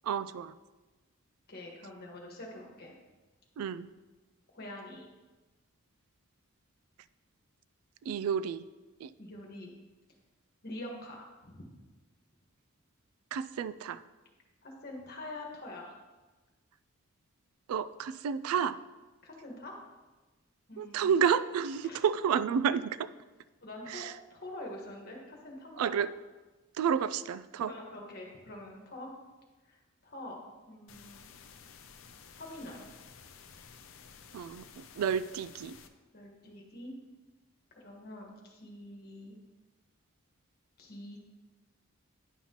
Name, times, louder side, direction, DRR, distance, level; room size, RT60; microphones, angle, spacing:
voice 1, 0.0-0.5 3.6-3.9 8.1-8.7 9.0-9.1 13.3-14.0 17.7-18.8 20.8-23.1 23.9-24.1 25.8-26.1 26.8-27.7 34.3-35.7, right 7 dB, 85° right, 15 dB, 0.3 m, -30 dB
voice 2, 1.5-2.9 4.5-5.1 9.2-9.7 10.6-11.8 14.6-15.9 19.2-19.8 20.7-21.1 21.8-22.0 23.6-25.9 27.6-29.1 29.7-31.5 32.3-32.9 36.1-36.9 37.7-39.3 40.8-41.2, left 1 dB, 45° left, -1 dB, 1.4 m, -45 dB
sound 1, 30.9-35.9, left 6 dB, 65° left, 0.5 m, -53 dB
10.0 x 5.7 x 2.9 m, 1.2 s
head